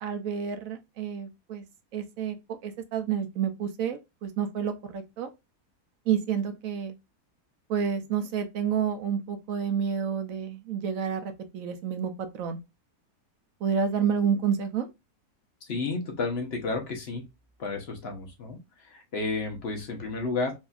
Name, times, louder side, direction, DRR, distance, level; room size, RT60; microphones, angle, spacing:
voice 1, 0.0-1.6 1.9-2.4 2.6-5.3 6.1-6.9 7.7-12.6 13.6-14.9, right 7 dB, 65° right, 1.0 m, -29 dB
voice 2, 15.7-17.3 17.6-20.5, left 3 dB, 45° left, 1.1 m, -32 dB
4.2 x 2.7 x 2.3 m
omnidirectional pair, 1.7 m